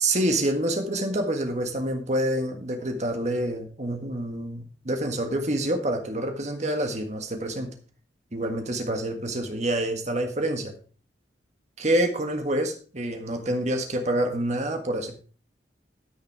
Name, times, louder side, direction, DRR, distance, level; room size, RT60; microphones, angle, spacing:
voice 1, 0.0-7.7 8.3-10.7 11.8-15.1, right 1 dB, 40° right, 4 dB, 1.6 m, -27 dB
13.0 x 6.8 x 4.8 m, 0.40 s
head